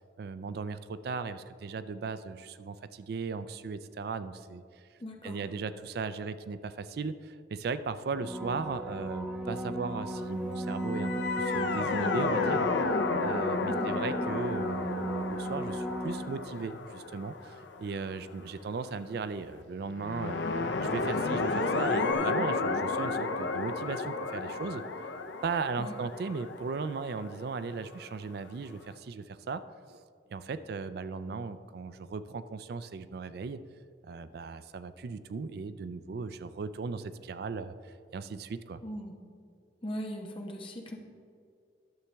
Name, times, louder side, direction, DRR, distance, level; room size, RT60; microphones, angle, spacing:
voice 1, 0.2-4.6 5.2-12.7 13.2-20.4 20.8-24.8 25.4-29.6 29.9-30.0 30.3-33.6 34.0-38.8, right 4 dB, 60° right, 13 dB, 0.4 m, -37 dB
voice 2, 5.0-5.5 13.7-13.9 25.8-25.9 38.8-39.1 39.8-40.9, equal, 30° left, 2 dB, 1.0 m, -39 dB
sound 1, 8.2-16.8 22.1-22.2, right 1 dB, 5° right, 0.5 m, -36 dB
sound 2, 10.8-18.1 20.0-27.7, left 3 dB, 85° left, 0.6 m, -32 dB
11.0 x 7.1 x 3.4 m, 2.3 s
head